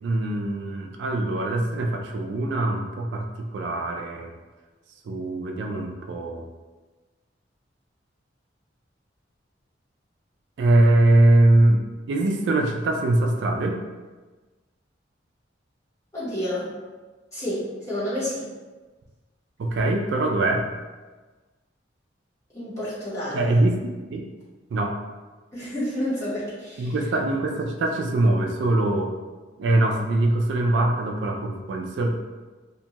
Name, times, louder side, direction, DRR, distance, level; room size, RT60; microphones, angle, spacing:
voice 1, 0.0-4.3 5.1-6.5 10.6-13.8 19.6-20.7 23.3-24.2 24.7-25.0 26.8-29.1 29.6-32.4, right 2 dB, 75° right, 2 dB, 0.3 m, -22 dB
voice 2, 16.1-16.7 17.3-18.5 22.5-23.6 25.5-26.9, left 1 dB, 15° left, -11 dB, 1.0 m, -29 dB
2.5 x 2.2 x 2.8 m, 1.3 s
head